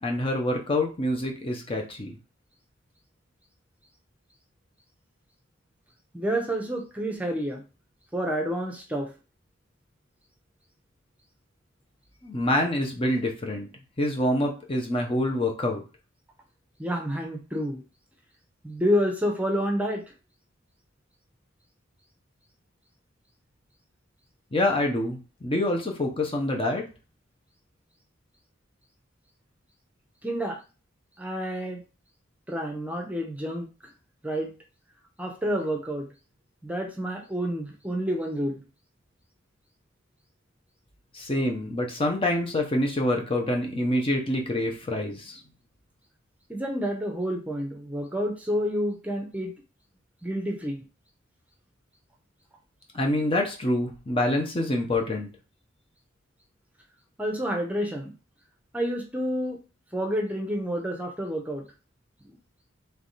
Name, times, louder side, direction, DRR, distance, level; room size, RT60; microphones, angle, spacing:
voice 1, 0.0-2.1 12.2-13.7 14.0-15.8 24.5-26.9 41.1-45.4 52.9-55.3, left 1 dB, 30° left, 2 dB, 0.8 m, -26 dB
voice 2, 6.1-7.6 8.1-9.1 16.8-17.8 18.6-20.0 30.2-30.6 31.2-31.8 32.5-33.7 34.2-34.5 35.2-36.1 36.6-38.6 46.5-49.5 50.2-50.8 57.2-58.1 58.7-59.6 59.9-61.6 62.2-62.4, equal, 10° right, 2 dB, 0.8 m, -29 dB
3.4 x 3.3 x 4.1 m, 0.32 s
head